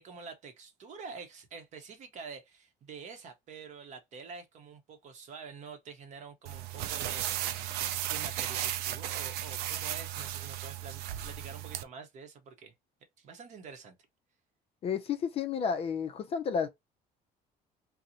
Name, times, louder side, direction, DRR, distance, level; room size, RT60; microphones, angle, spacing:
voice 1, 0.0-7.5 8.1-12.7 13.2-14.0, right 5 dB, 45° right, 0.7 m, -47 dB
sound 1, 6.5-11.8, right 12 dB, 90° right, 0.4 m, -35 dB
voice 2, 14.8-16.7, left 6 dB, 35° left, 0.4 m, -31 dB
2.8 x 2.0 x 3.6 m
cardioid pair, 165°, 16 cm